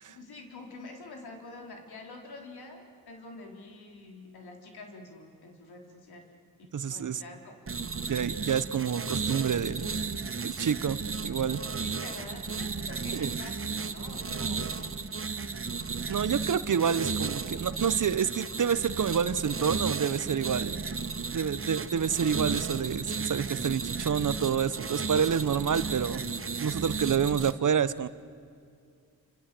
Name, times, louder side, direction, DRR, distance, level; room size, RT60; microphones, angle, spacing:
voice 1, 0.1-6.3 6.6-7.5 11.8-14.8 27.0-27.2, left 2 dB, 90° left, 2 dB, 4.2 m, -47 dB
voice 2, 6.7-7.2 8.0-9.9 10.4-11.6 13.1-13.3 16.1-20.8 21.3-26.2 26.6-28.1, right 7 dB, 55° right, 15 dB, 1.0 m, -28 dB
sound 1, 7.7-27.5, right 4 dB, 35° right, 1.2 m, -34 dB
28.5 x 27.0 x 7.8 m, 2.3 s
cardioid pair, 80°, 37 cm